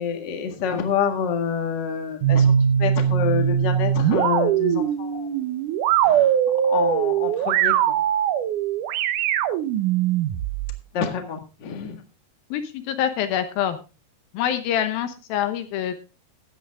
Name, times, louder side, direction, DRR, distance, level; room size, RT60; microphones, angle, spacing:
voice 1, 0.0-2.5 2.8-5.3 6.0-6.3 6.6-8.0 10.9-12.0, left 7 dB, 40° left, 5 dB, 1.7 m, -27 dB
sound 1, 2.2-10.8, right 9 dB, 75° right, 2.0 m, -21 dB
voice 2, 12.5-13.8 14.3-16.0, left 10 dB, 75° left, 9 dB, 2.7 m, -25 dB
15.5 x 9.3 x 3.6 m, 0.30 s
omnidirectional pair, 4.4 m